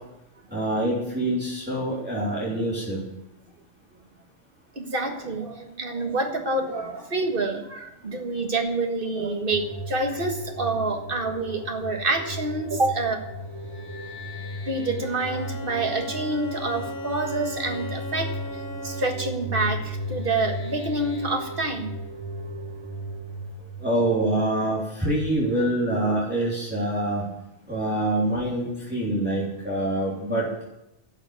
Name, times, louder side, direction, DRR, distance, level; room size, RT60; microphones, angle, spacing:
voice 1, 0.5-3.0 23.8-27.2 27.7-30.5, right 1 dB, 10° right, -7 dB, 3.4 m, -25 dB
voice 2, 4.8-13.2 14.7-18.3 18.8-21.9, right 2 dB, 50° right, 3 dB, 1.8 m, -27 dB
sound 1, 9.5-24.9, right 1 dB, 70° left, 4.3 m, -35 dB
Bowed string instrument, 15.0-19.4, left 2 dB, 20° left, 1.0 m, -37 dB
11.5 x 7.1 x 9.5 m, 0.87 s
omnidirectional pair, 1.2 m